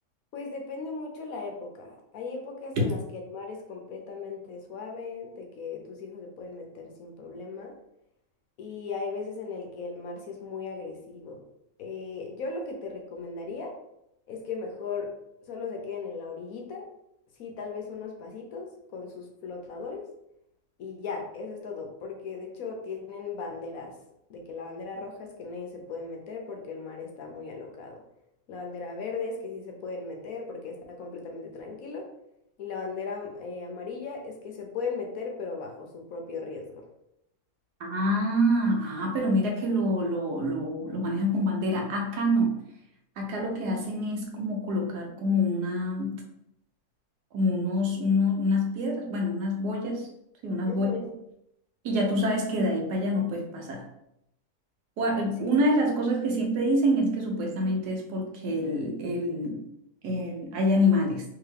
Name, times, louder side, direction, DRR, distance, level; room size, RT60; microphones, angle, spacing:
voice 1, 0.3-7.7 8.6-11.4 11.8-13.7 14.3-15.1 15.5-16.9 17.4-20.0 20.8-23.9 24.3-28.0 28.5-32.1 32.6-36.8 50.7-51.1, left 4 dB, 65° left, 2 dB, 1.1 m, -37 dB
voice 2, 37.8-42.6 43.2-46.2 47.3-50.1 50.4-50.9 51.8-53.8 55.0-59.6 60.0-61.2, left 1 dB, 90° right, 1 dB, 1.4 m, -26 dB
3.5 x 3.1 x 3.3 m, 0.81 s
omnidirectional pair, 1.7 m